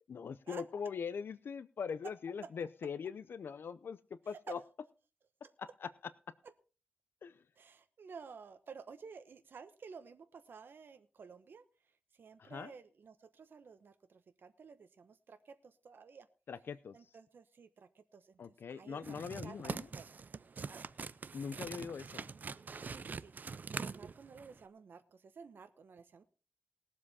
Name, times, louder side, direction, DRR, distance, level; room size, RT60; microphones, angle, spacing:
voice 1, 0.1-4.6 5.6-5.9 7.2-7.4 12.4-12.7 16.5-17.1 18.4-19.9 21.3-22.3, left 6 dB, 80° left, 15 dB, 0.6 m, -42 dB
voice 2, 7.6-11.6 12.1-16.3 16.9-18.4 18.7-19.0 19.3-20.3 20.7-20.8 22.9-26.2, right 5 dB, 70° right, 8 dB, 1.0 m, -54 dB
sound 1, 19.0-24.6, right 5 dB, 50° right, 0.5 m, -44 dB
20.0 x 7.6 x 4.2 m, 0.35 s
wide cardioid pair, 115°, 4 cm